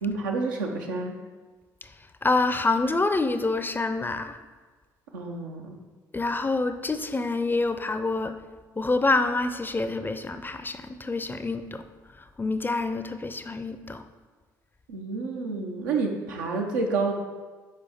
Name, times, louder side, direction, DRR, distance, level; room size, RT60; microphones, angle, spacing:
voice 1, 0.0-1.2 5.1-5.8 14.9-17.1, right 4 dB, 90° right, 1 dB, 0.7 m, -29 dB
voice 2, 2.2-4.4 6.1-8.4 8.8-11.9 12.2-14.1, left 3 dB, 20° left, 9 dB, 0.5 m, -27 dB
6.5 x 4.7 x 3.5 m, 1.4 s
hypercardioid pair, 50°, 10 cm